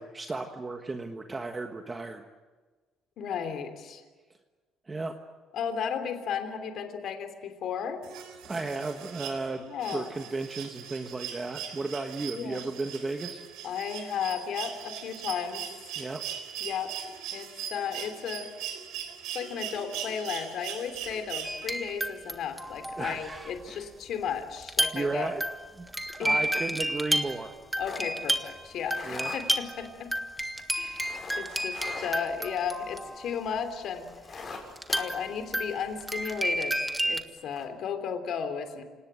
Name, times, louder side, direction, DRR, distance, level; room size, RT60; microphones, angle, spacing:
voice 1, 0.0-2.2 4.9-5.1 8.4-9.6 9.9-13.4 16.0-16.2 23.0-23.9 24.9-25.4 25.8-25.9 26.1-27.5 29.0-29.3, right 3 dB, 20° right, 5 dB, 1.4 m, -34 dB
voice 2, 3.2-4.0 5.5-8.0 9.6-10.1 12.4-12.6 13.6-15.6 16.6-16.9 17.3-18.5 19.3-25.3 26.2-26.4 27.8-30.1 30.7-34.1 34.9-38.8, left 7 dB, 60° left, 8 dB, 3.1 m, -34 dB
sound 1, 8.0-21.9 23.4-23.5, right 9 dB, 90° right, 4.0 m, -40 dB
sound 2, 20.9-21.5 21.9-22.1 22.5-33.2 33.6-33.7 34.0-36.5 36.9-37.0 37.4-37.7, left 4 dB, 35° left, 6.7 m, -45 dB
sound 3, 21.4-22.3 22.6-23.3 24.6-25.1 25.4-33.4 34.8-37.2, right 1 dB, 5° right, 1.6 m, -31 dB
28.0 x 18.5 x 9.0 m, 1.4 s
cardioid pair, 125°, 0 cm